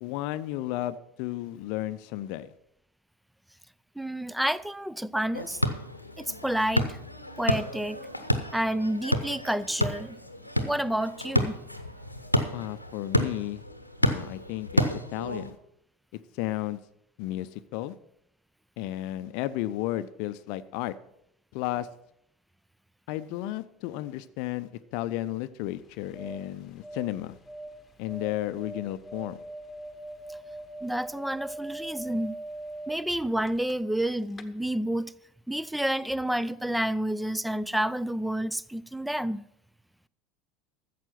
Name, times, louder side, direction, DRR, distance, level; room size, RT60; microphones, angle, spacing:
voice 1, 0.0-2.5 12.5-13.6 14.0-14.8 15.1-15.6 16.3-16.8 17.2-18.0 18.8-20.9 21.5-21.9 23.1-27.4 28.0-29.4, left 15 dB, 55° left, 0.5 m, -33 dB
voice 2, 4.0-5.6 6.2-7.0 7.4-8.0 8.5-10.2 10.6-11.6 30.8-32.3 32.9-35.1 35.5-39.5, right 1 dB, ahead, 0.4 m, -29 dB
sound 1, 5.3-15.5, equal, 90° left, 0.9 m, -30 dB
sound 2, 25.8-34.0 34.3-34.4, right 1 dB, 20° left, 1.1 m, -42 dB
13.5 x 7.6 x 5.9 m
figure-of-eight pair, 75°, 0 cm